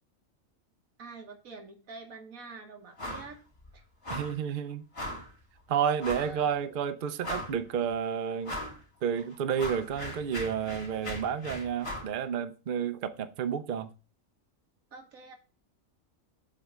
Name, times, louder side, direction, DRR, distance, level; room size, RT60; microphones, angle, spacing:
voice 1, 1.0-3.4 3.7-3.8 6.2-6.5 14.9-15.3, right 4 dB, 90° right, 1.8 m, -46 dB
sound 1, 3.0-3.3 3.6-3.7 4.0-4.4 4.9-5.3 6.0-6.4 6.8-6.9 7.2-7.7 8.4-8.8 9.2-12.1, left 1 dB, 45° left, 2.5 m, -38 dB
voice 2, 4.1-4.9 5.7-8.6 9.0-13.9, right 7 dB, 55° right, 0.6 m, -31 dB
7.6 x 3.5 x 6.2 m
omnidirectional pair, 1.4 m